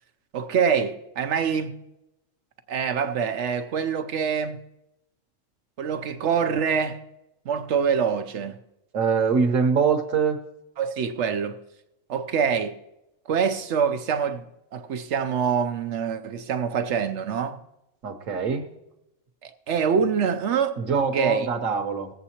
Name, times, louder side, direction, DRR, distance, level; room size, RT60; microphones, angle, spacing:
voice 1, 0.3-1.8 2.7-4.6 5.8-7.0 7.5-8.6 10.8-11.6 12.1-12.8 13.3-14.4 14.7-17.6 19.4-20.8 21.1-21.5, right 6 dB, 65° right, 0.9 m, -25 dB
voice 2, 8.9-10.4 18.0-18.7 20.8-22.1, right 5 dB, 90° right, 1.3 m, -23 dB
20.5 x 8.0 x 2.8 m
omnidirectional pair, 1.3 m